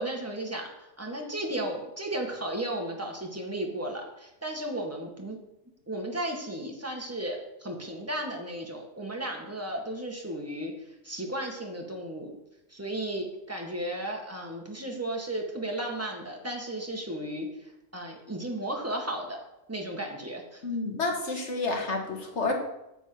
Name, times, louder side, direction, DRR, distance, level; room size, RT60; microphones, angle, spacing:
voice 1, 0.0-5.4 5.9-10.7 11.0-12.3 12.7-17.5 17.9-19.4 19.7-20.6, right 1 dB, 10° right, 1 dB, 1.5 m, -34 dB
voice 2, 20.6-22.5, left 3 dB, 50° left, 2 dB, 1.8 m, -29 dB
9.9 x 4.5 x 7.7 m, 0.88 s
omnidirectional pair, 1.6 m